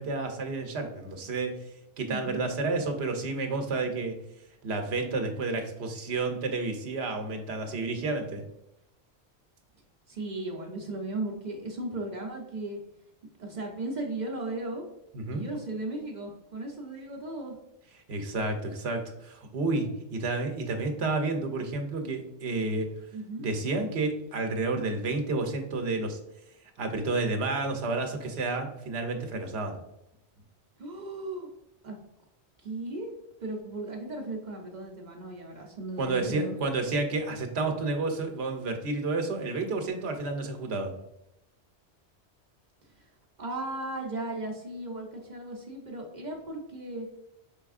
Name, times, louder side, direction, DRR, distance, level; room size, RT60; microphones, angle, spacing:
voice 1, 0.0-1.6 2.0-4.2 4.6-8.4 15.1-15.4 18.1-22.9 23.4-26.2 26.8-29.8 36.0-40.9, right 3 dB, 75° right, 5 dB, 1.0 m, -30 dB
voice 2, 2.1-2.5 10.1-12.8 13.4-14.8 15.3-17.6 23.1-23.5 30.8-31.5 31.8-32.0 32.6-36.6 43.4-47.1, right 2 dB, 45° right, 1 dB, 0.8 m, -36 dB
5.4 x 3.4 x 2.4 m, 0.84 s
omnidirectional pair, 1.1 m